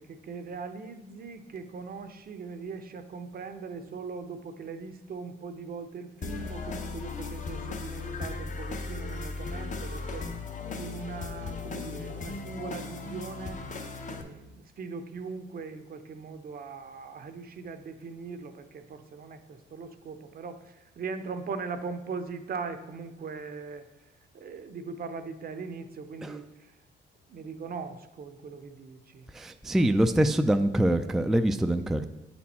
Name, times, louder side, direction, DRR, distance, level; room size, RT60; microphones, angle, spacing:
voice 1, 0.0-10.3 10.8-13.6 14.1-23.8 24.3-26.7 27.3-29.3, right 5 dB, 50° right, 8 dB, 0.6 m, -40 dB
sound 1, 6.2-14.2, left 4 dB, 40° left, 0.8 m, -37 dB
voice 2, 29.3-32.1, right 1 dB, ahead, 8 dB, 0.3 m, -24 dB
8.3 x 4.3 x 4.2 m, 0.95 s
cardioid pair, 90°, 20 cm